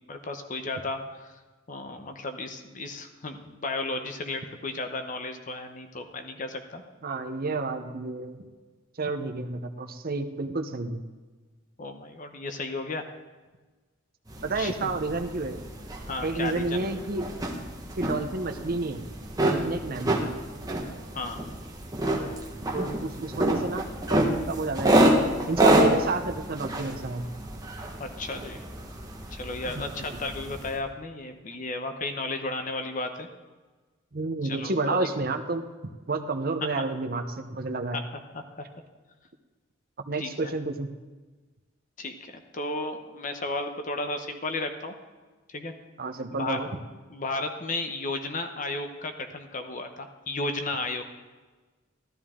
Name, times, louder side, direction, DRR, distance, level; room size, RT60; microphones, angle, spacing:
voice 1, 0.1-1.3 1.7-6.8 11.8-13.1 14.6-14.9 16.1-16.8 21.1-21.5 22.1-22.2 28.0-28.6 29.3-33.3 34.4-35.1 36.6-36.8 37.9-38.0 38.3-38.6 40.1-40.5 42.0-44.9 45.5-45.7 46.4-46.7 47.1-51.0, left 2 dB, 40° left, 6 dB, 0.9 m, -34 dB
voice 2, 7.0-8.4 9.0-11.0 14.4-15.6 16.2-17.3 18.0-19.0 19.4-20.3 22.7-25.1 25.4-27.3 30.1-30.2 34.1-35.6 36.1-38.0 40.1-40.9 46.0-46.7, right 3 dB, 50° right, 6 dB, 0.8 m, -30 dB
sound 1, 14.3-30.8, right 1 dB, 20° right, 1.3 m, -28 dB
13.5 x 12.5 x 3.7 m, 1.3 s
head